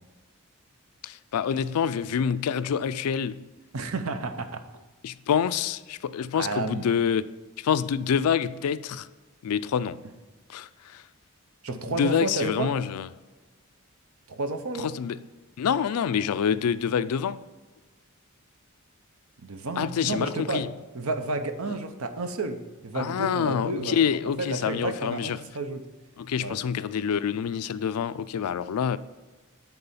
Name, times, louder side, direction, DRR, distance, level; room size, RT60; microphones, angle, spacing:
voice 1, 1.0-3.4 5.0-7.2 7.6-9.1 9.4-10.0 10.5-11.0 11.7-13.1 14.8-15.2 15.6-17.4 19.8-20.7 22.9-25.4 26.2-29.0, left 7 dB, 90° left, 0.4 m, -27 dB
voice 2, 3.7-4.6 6.3-6.9 11.6-12.7 14.3-14.9 19.4-20.6 20.9-22.6 22.8-24.0 24.4-25.8 26.4-26.6, right 3 dB, 70° right, 0.8 m, -31 dB
10.5 x 4.0 x 5.5 m
head